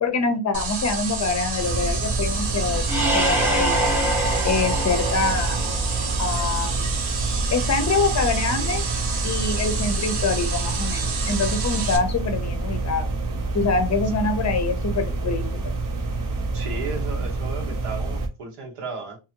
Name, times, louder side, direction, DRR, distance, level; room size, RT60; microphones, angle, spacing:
voice 1, 0.0-2.9 3.1-3.9 4.4-5.6 6.2-6.9 7.5-8.8 9.2-13.1 13.5-15.7, left 4 dB, 35° left, 0.6 m, -25 dB
sound 1, 0.5-12.0, right 4 dB, 70° right, 0.9 m, -29 dB
sound 2, 1.6-18.3, right 3 dB, 45° right, 0.6 m, -27 dB
sound 3, 2.8-6.4, right 1 dB, 5° right, 0.8 m, -25 dB
voice 2, 16.5-19.2, right 4 dB, 90° right, 1.3 m, -34 dB
2.9 x 2.6 x 2.8 m
wide cardioid pair, 135°, 49 cm